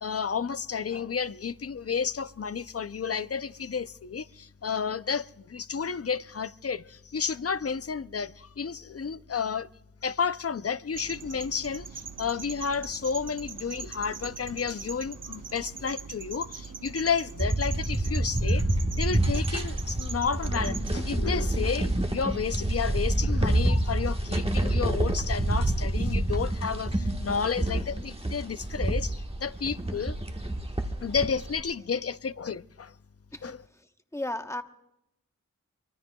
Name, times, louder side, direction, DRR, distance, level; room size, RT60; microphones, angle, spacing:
voice 1, 0.0-9.7 10.0-18.7 18.9-30.2 31.0-32.9 33.4-33.6, left 6 dB, 45° left, 0.5 m, -31 dB
sound 1, 10.9-20.9, right 5 dB, 70° right, 0.9 m, -42 dB
sound 2, 17.4-31.6, right 1 dB, 20° right, 1.3 m, -28 dB
voice 2, 34.1-34.6, left 1 dB, 10° left, 1.0 m, -33 dB
24.5 x 24.0 x 2.3 m
wide cardioid pair, 70°, 33 cm